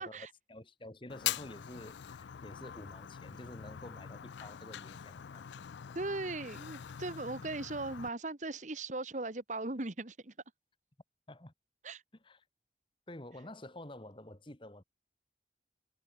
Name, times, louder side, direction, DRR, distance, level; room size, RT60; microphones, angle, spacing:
voice 1, 0.0-5.5 11.3-11.5 12.2-12.4 13.1-14.8, left 1 dB, 30° left, 1.7 m, -49 dB
Fire, 1.1-8.1, left 10 dB, 90° left, 0.4 m, -43 dB
voice 2, 5.9-10.3 11.8-12.0, right 2 dB, 45° right, 1.5 m, -38 dB
head